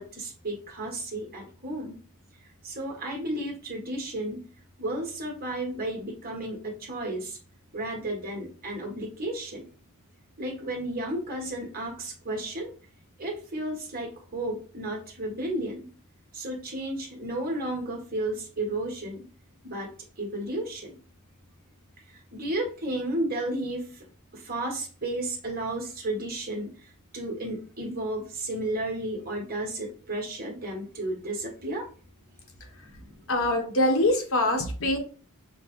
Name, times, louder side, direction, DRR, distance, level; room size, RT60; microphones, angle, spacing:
voice 1, 0.0-2.0 2.6-4.4 4.8-7.4 7.7-9.7 10.4-12.7 13.2-15.9 16.3-19.3 19.6-19.9 20.2-21.0 22.1-24.0 24.3-26.7 27.1-31.9 32.9-33.1, right 1 dB, 45° right, 0 dB, 1.3 m, -33 dB
voice 2, 33.3-35.0, left 1 dB, 70° left, 3 dB, 1.0 m, -24 dB
5.9 x 2.1 x 3.0 m, 0.39 s
head